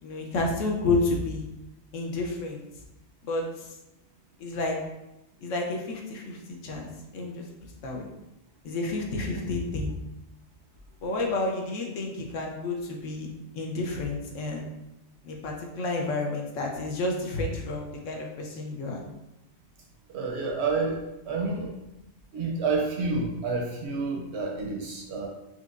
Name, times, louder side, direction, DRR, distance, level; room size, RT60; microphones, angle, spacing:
voice 1, 0.0-1.4 1.9-2.6 3.3-3.7 4.4-4.8 5.4-7.4 7.8-8.0 8.6-10.0 11.0-13.3 13.5-14.7 15.2-19.0, left 2 dB, 70° left, 0 dB, 1.0 m, -30 dB
voice 2, 20.1-21.7 22.3-25.3, right 3 dB, 65° right, 0 dB, 0.8 m, -29 dB
4.5 x 2.4 x 2.4 m, 0.94 s
omnidirectional pair, 1.4 m